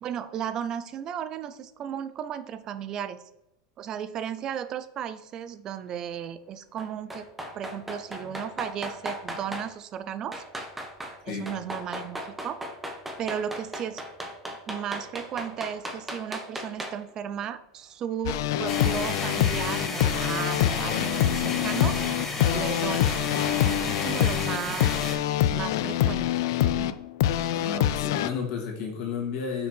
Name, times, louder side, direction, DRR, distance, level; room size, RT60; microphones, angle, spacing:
voice 1, 0.0-3.2 3.8-7.3 7.5-10.4 11.2-12.6 13.2-14.0 14.7-22.0 22.5-23.2 23.6-25.1 25.5-27.0, right 9 dB, 30° right, 13 dB, 0.4 m, -35 dB
sound 1, 6.8-9.7 10.3-11.2 11.5-17.1 17.4-17.5, equal, 5° right, 0.8 m, -36 dB
sound 2, 18.3-28.3, left 12 dB, 70° left, 0.4 m, -25 dB
sound 3, 18.7-25.2, left 2 dB, 15° left, 1.1 m, -33 dB
voice 2, 27.5-29.7, left 5 dB, 50° left, 1 dB, 1.8 m, -32 dB
5.8 x 4.5 x 4.4 m, 0.84 s
supercardioid pair, 155°, 2 cm